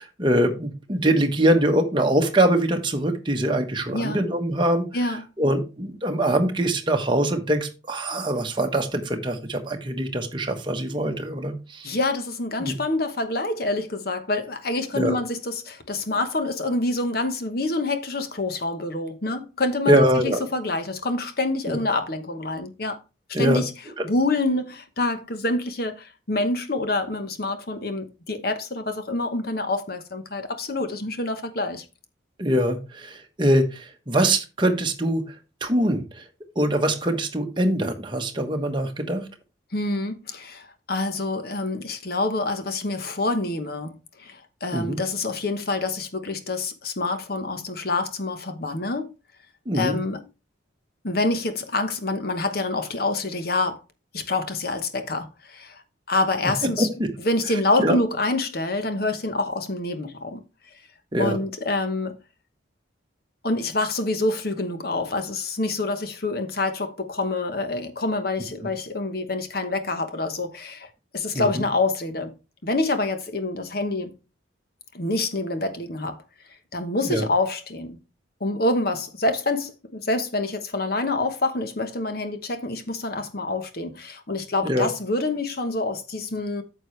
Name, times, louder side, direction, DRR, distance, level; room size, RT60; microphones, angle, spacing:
voice 1, 0.0-4.9 5.4-12.0 12.6-12.7 14.9-15.2 19.9-20.4 21.7-21.8 23.3-23.6 24.0-24.1 32.4-35.2 35.6-36.2 36.5-39.3 44.7-45.0 49.7-50.0 56.8-56.9 57.5-58.0 61.1-61.4 71.3-71.6 77.0-77.3 84.6-84.9, right 1 dB, 25° right, 1.2 m, -23 dB
voice 2, 11.8-23.0 23.4-23.7 24.0-31.8 39.7-49.1 49.7-50.2 51.0-53.8 54.1-55.8 56.1-56.9 57.2-60.4 61.2-62.2 63.4-72.4 72.6-74.2 74.9-76.2 76.7-78.0 78.4-86.6, left 2 dB, 50° left, 1.0 m, -26 dB
9.2 x 6.5 x 3.2 m
head